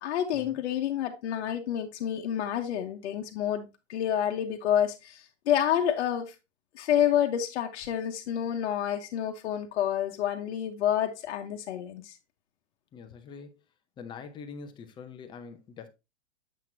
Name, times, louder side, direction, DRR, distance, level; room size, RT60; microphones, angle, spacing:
voice 1, 0.0-6.3 6.7-12.1, left 10 dB, 60° left, 1.0 m, -29 dB
voice 2, 12.9-13.6 14.0-15.9, left 5 dB, 15° left, 0.6 m, -44 dB
7.4 x 5.9 x 2.7 m
hypercardioid pair, 135°, 37 cm